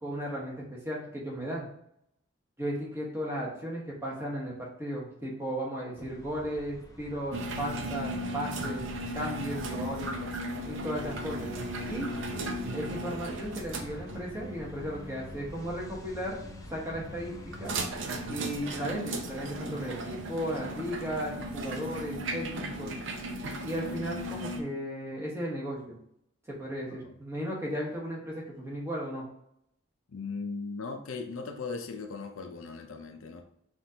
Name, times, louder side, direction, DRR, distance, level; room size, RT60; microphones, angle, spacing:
voice 1, 0.0-1.7 2.6-10.1 10.7-11.5 11.9-12.1 12.7-16.4 16.7-17.8 18.3-22.9 23.6-26.0 26.5-29.2, equal, 10° right, -4 dB, 1.0 m, -35 dB
sound 1, 6.0-17.9, left 1 dB, 15° left, 0.3 m, -49 dB
sound 2, 7.3-24.6, right 1 dB, 65° right, 0.5 m, -37 dB
voice 2, 30.1-33.4, left 4 dB, 80° left, 5 dB, 0.5 m, -38 dB
5.9 x 2.5 x 2.8 m, 0.73 s
head